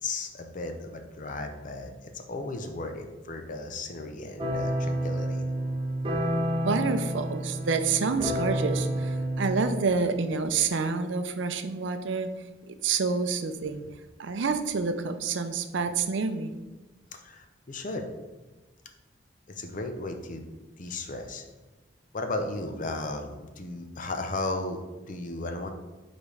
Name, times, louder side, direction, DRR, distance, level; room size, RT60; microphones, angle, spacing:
voice 1, 0.0-5.5 17.1-18.1 19.5-20.5 20.8-21.5 22.1-25.7, left 2 dB, 45° left, 5 dB, 0.7 m, -35 dB
sound 1, 4.4-9.6, right 1 dB, 30° right, 0.8 m, -29 dB
voice 2, 6.6-12.3 12.7-13.8 14.2-16.5, right 4 dB, 65° right, 9 dB, 0.5 m, -28 dB
5.1 x 4.2 x 4.8 m, 1.2 s
head